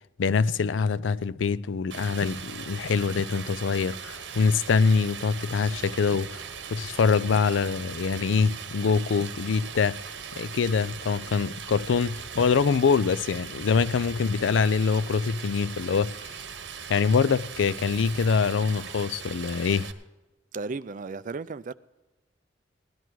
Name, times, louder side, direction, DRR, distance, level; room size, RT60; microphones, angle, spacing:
voice 1, 0.2-6.4 6.7-10.0 10.4-16.3 16.9-19.9, left 5 dB, 85° left, 0.4 m, -24 dB
Stream, 1.9-19.9, right 7 dB, 70° right, 1.0 m, -39 dB
voice 2, 20.5-21.7, right 4 dB, 45° right, 0.4 m, -34 dB
17.0 x 11.0 x 4.6 m
head